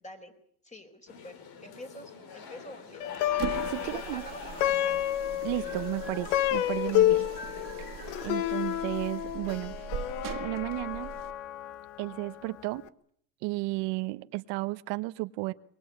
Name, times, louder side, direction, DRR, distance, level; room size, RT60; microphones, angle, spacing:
voice 1, 0.6-3.2 3.8-5.1, left 1 dB, 15° left, 6 dB, 4.6 m, -46 dB
sound 1, 1.1-8.3, left 5 dB, 50° left, 3.8 m, -44 dB
Plucked string instrument, 3.0-12.4, left 13 dB, 75° left, 1.3 m, -30 dB
sound 2, 3.3-11.4, right 12 dB, 45° right, 2.1 m, -41 dB
voice 2, 3.7-4.2 5.4-7.3 7.8-7.9 8.2-9.8 10.4-11.1 12.0-12.9 13.4-15.5, right 22 dB, 65° right, 12 dB, 1.0 m, -33 dB
23.5 x 22.5 x 8.5 m, 0.65 s
supercardioid pair, 120°, 46 cm